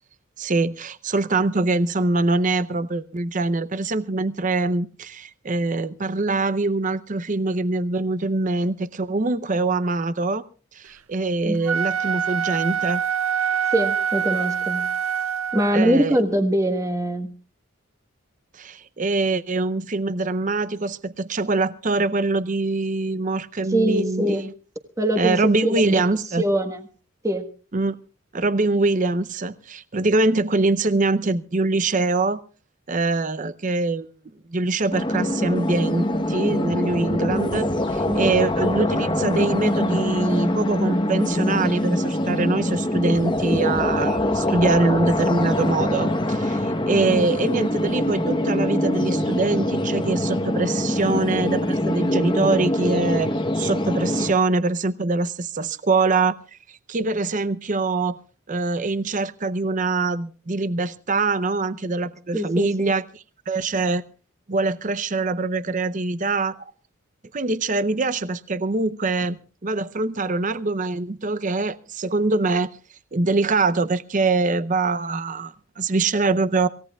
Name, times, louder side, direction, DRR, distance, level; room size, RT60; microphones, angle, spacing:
voice 1, 0.4-10.4 10.7-13.0 15.7-16.2 18.5-24.5 25.2-26.4 27.7-28.0 28.3-32.4 32.9-34.1 34.5-56.4 56.7-58.2 58.5-64.0 64.5-66.7 67.3-72.7 73.1-76.7, right 3 dB, 35° right, 0.6 m, -24 dB
Wind instrument woodwind instrument, 11.5-15.9, right 8 dB, 80° right, 0.8 m, -25 dB
voice 2, 13.7-14.9 15.5-17.3 23.7-24.5 25.0-26.0 26.4-26.8 27.2-27.5 38.1-38.4 47.1-47.2 62.3-62.9, right 1 dB, 15° right, 1.3 m, -23 dB
sound 1, 34.9-54.3, left 1 dB, 20° left, 1.0 m, -23 dB
27.0 x 16.5 x 2.3 m
head